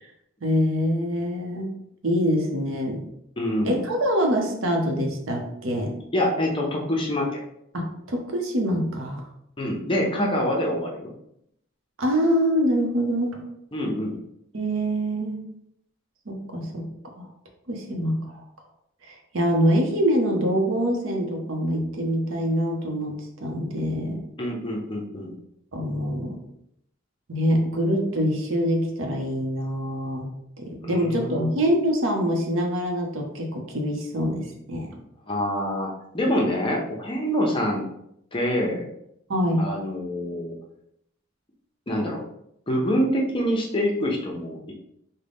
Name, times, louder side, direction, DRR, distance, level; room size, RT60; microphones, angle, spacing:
voice 1, 0.4-1.7 2.0-3.0 3.6-6.0 7.7-9.3 12.0-13.4 14.5-15.5 16.3-16.9 17.2-17.3 17.7-18.4 19.0-24.2 25.7-26.4 27.3-35.0 39.3-39.8, equal, 70° right, 2 dB, 0.7 m, -25 dB
voice 2, 3.4-3.8 6.1-7.4 9.6-11.1 13.7-14.2 24.4-25.3 30.8-31.5 35.3-37.9 38.3-38.9 39.6-40.6 41.9-42.2 42.7-44.7, equal, 25° left, -1 dB, 0.6 m, -26 dB
3.8 x 2.1 x 3.4 m, 0.76 s
head